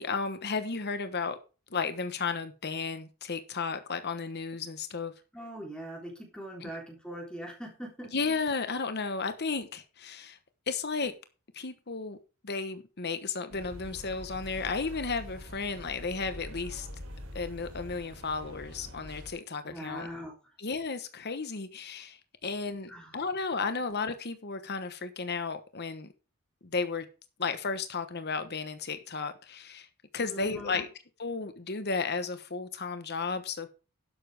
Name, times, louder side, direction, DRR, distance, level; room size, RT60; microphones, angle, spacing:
voice 1, 0.0-1.4 1.7-5.1 6.6-6.7 8.1-10.4 10.7-11.1 11.5-12.2 12.4-16.9 17.3-20.1 20.6-26.1 26.6-27.1 27.4-29.9 30.1-30.9 31.2-33.7, left 4 dB, 45° left, 1.1 m, -33 dB
voice 2, 5.3-8.1 19.6-20.5 22.9-23.2 30.2-30.9, equal, 5° left, 3.5 m, -42 dB
sound 1, 13.5-19.3, equal, 70° right, 4.0 m, -44 dB
12.0 x 10.0 x 3.5 m
head